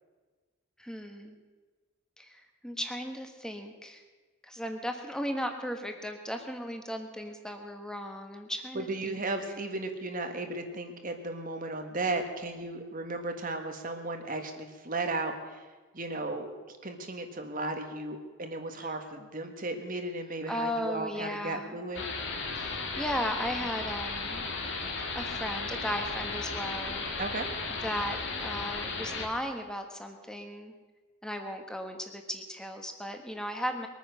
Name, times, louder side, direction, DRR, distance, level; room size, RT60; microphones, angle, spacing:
voice 1, 0.8-1.4 2.2-4.0 4.4-9.7 18.8-18.9 20.5-21.8 22.5-24.5 25.1-27.0 27.8-28.2 28.4-30.7 31.2-33.9, equal, 5° left, 5 dB, 1.4 m, -36 dB
voice 2, 8.7-15.6 15.9-22.0 27.2-27.5, right 2 dB, 40° right, 6 dB, 1.5 m, -35 dB
sound 1, 21.9-29.3, left 3 dB, 55° left, 2.1 m, -35 dB
22.0 x 9.4 x 6.5 m, 1.3 s
head